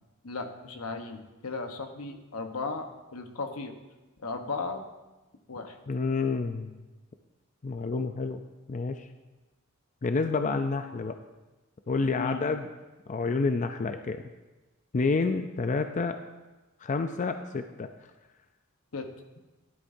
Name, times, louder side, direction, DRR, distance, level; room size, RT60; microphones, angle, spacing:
voice 1, 0.2-3.7 4.2-4.8 5.5-5.8 12.2-12.4 18.9-19.1, left 3 dB, 80° left, 5 dB, 1.1 m, -36 dB
voice 2, 5.9-6.8 7.6-8.4 8.7-9.1 10.0-11.2 11.9-12.7 13.1-14.2 14.9-16.2 16.8-17.9, left 4 dB, 35° left, 7 dB, 0.4 m, -29 dB
13.5 x 11.5 x 2.7 m, 1.1 s
head